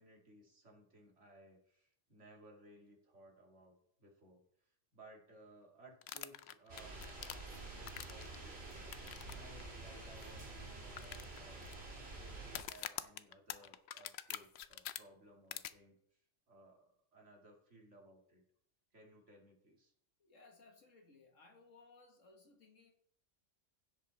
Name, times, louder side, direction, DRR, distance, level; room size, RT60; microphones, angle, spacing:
voice 1, 0.0-16.2 16.5-18.4 18.9-19.9, right 1 dB, 70° right, 0 dB, 2.6 m, -61 dB
sound 1, 6.0-8.4 8.9-9.3 9.6-9.7 10.2-10.3 11.0-11.7 12.5-15.0 15.5-15.7, left 10 dB, 65° left, 0.8 m, -45 dB
sound 2, 6.7-12.6, right 2 dB, 55° right, 2.7 m, -49 dB
voice 2, 20.2-22.9, left 3 dB, 85° left, 3 dB, 2.1 m, -62 dB
16.0 x 5.4 x 4.1 m, 0.68 s
omnidirectional pair, 1.3 m